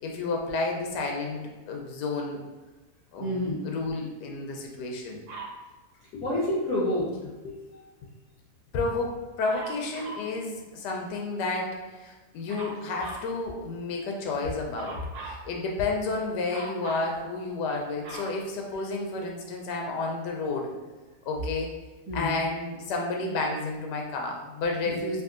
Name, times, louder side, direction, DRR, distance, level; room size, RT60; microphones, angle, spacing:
voice 1, 0.0-1.4 1.7-2.4 3.1-5.2 6.1-6.2 7.4-7.5 8.7-15.0 15.2-20.7 21.3-21.7 22.1-25.2, left 3 dB, 85° left, 0 dB, 1.2 m, -31 dB
voice 2, 3.2-3.6 6.2-7.3 7.7-7.9 22.1-22.4 24.8-25.0, left 1 dB, 25° right, -10 dB, 0.8 m, -29 dB
Dog, 5.3-5.6 9.4-10.3 12.5-13.3 14.7-15.4 16.5-17.1 17.7-19.2 19.9-20.0, right 3 dB, 65° right, 1.0 m, -41 dB
3.5 x 2.3 x 2.4 m, 1.2 s
omnidirectional pair, 1.8 m